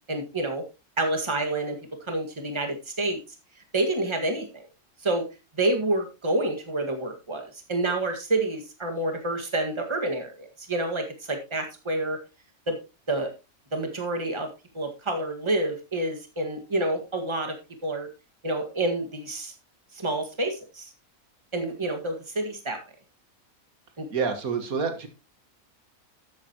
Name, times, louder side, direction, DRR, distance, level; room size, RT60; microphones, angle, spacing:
voice 1, 0.1-0.6 1.0-1.8 2.1-3.2 3.7-4.6 5.0-5.3 5.6-12.2 12.7-12.8 13.1-13.3 13.7-14.5 14.7-17.5 17.8-18.1 18.4-19.5 19.9-20.9 21.5-22.8 24.0-24.1, right 2 dB, 20° right, 4 dB, 1.8 m, -28 dB
voice 2, 24.1-25.1, right 5 dB, 90° right, 7 dB, 2.0 m, -27 dB
12.5 x 8.4 x 2.9 m, 0.28 s
omnidirectional pair, 1.5 m